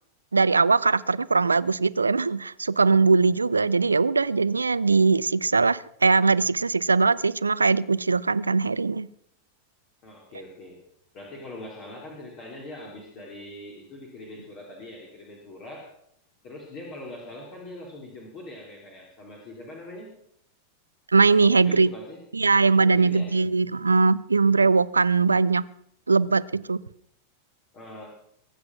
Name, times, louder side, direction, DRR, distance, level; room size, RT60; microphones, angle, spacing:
voice 1, 0.3-9.1 21.1-21.9 22.3-25.7 26.1-26.8, right 4 dB, 80° right, 19 dB, 0.5 m, -21 dB
voice 2, 10.0-10.8 11.1-15.9 16.4-20.1 21.5-22.2 22.8-23.4 27.7-28.1, left 1 dB, 40° left, -1 dB, 3.7 m, -42 dB
22.5 x 7.8 x 6.1 m, 0.71 s
figure-of-eight pair, 90°, 0 cm